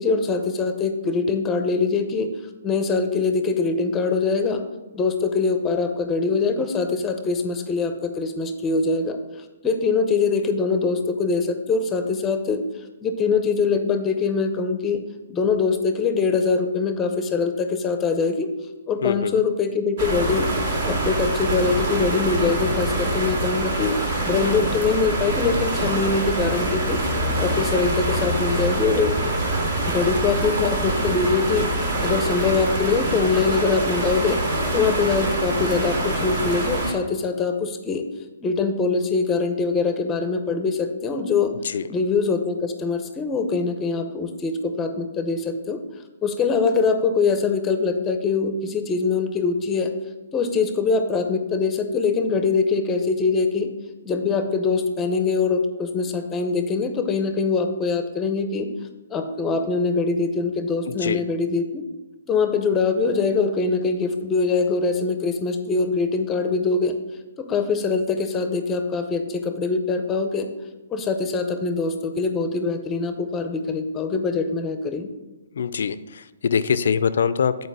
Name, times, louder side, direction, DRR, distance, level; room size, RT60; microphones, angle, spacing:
voice 1, 0.0-2.3 2.6-4.6 4.9-9.2 9.6-12.6 13.0-15.0 15.3-18.5 18.9-20.5 20.8-23.9 24.2-27.0 27.4-29.2 29.8-31.7 32.0-34.4 34.7-38.1 38.4-41.5 41.9-45.8 46.2-49.9 50.3-53.7 54.0-58.7 59.1-61.8 62.3-66.9 67.4-70.5 70.9-75.1, left 4 dB, 15° left, 7 dB, 0.6 m, -23 dB
voice 2, 19.0-19.4 41.6-41.8 60.9-61.2 75.5-77.7, left 7 dB, 70° left, 14 dB, 0.4 m, -23 dB
sound 1, 20.0-36.9, right 2 dB, 60° right, 2.4 m, -25 dB
8.0 x 4.5 x 4.8 m, 1.1 s
hypercardioid pair, 155°, 0 cm